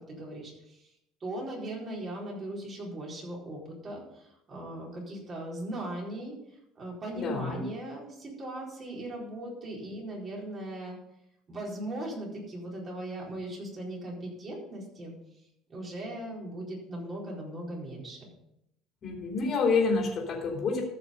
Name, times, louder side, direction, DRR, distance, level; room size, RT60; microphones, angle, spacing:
voice 1, 0.1-0.9 1.2-6.3 6.8-11.0 11.5-15.1 15.7-18.3, right 1 dB, 30° right, -3 dB, 4.3 m, -38 dB
voice 2, 7.1-7.6 19.0-20.8, left 4 dB, 40° left, -1 dB, 2.8 m, -28 dB
14.0 x 6.2 x 5.3 m, 0.81 s
cardioid pair, 140°, 0 cm